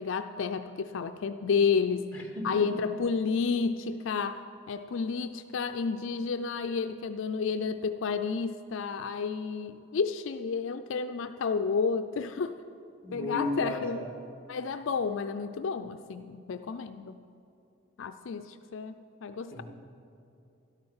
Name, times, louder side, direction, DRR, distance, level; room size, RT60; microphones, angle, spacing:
voice 1, 0.0-2.1 2.4-12.6 13.1-14.0 14.5-17.2 18.0-19.0 19.2-19.6, left 5 dB, 65° left, 9 dB, 0.4 m, -31 dB
voice 2, 2.1-2.6 13.0-14.2 19.5-19.6, left 1 dB, 10° left, 0 dB, 2.1 m, -35 dB
12.0 x 12.0 x 5.6 m, 2.7 s
head